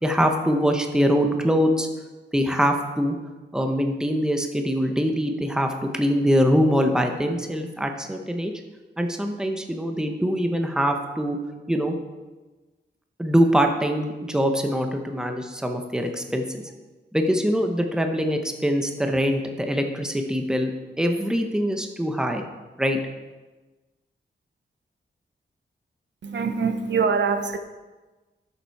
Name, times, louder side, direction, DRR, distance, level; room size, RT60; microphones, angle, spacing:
voice 1, 0.0-1.9 2.3-3.1 3.5-8.5 9.0-11.4 11.7-12.0 13.2-16.4 17.1-20.7 21.0-22.4 22.8-23.0, equal, 5° right, 4 dB, 0.9 m, -23 dB
voice 2, 26.2-27.6, right 5 dB, 70° right, 8 dB, 0.8 m, -24 dB
12.0 x 7.0 x 4.6 m, 1.2 s
wide cardioid pair, 165°, 19 cm